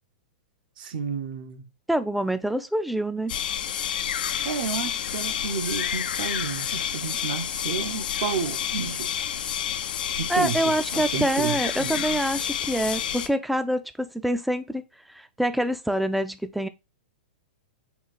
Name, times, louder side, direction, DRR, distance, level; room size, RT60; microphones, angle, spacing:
voice 1, 0.8-1.6 4.4-9.3 10.2-12.2, right 6 dB, 65° right, 0.7 m, -31 dB
voice 2, 1.9-3.4 10.3-14.8 15.1-16.7, right 1 dB, ahead, 0.3 m, -26 dB
sound 1, 3.3-13.3, left 9 dB, 70° left, 0.4 m, -29 dB
3.9 x 2.4 x 4.1 m
hypercardioid pair, 115°, 5 cm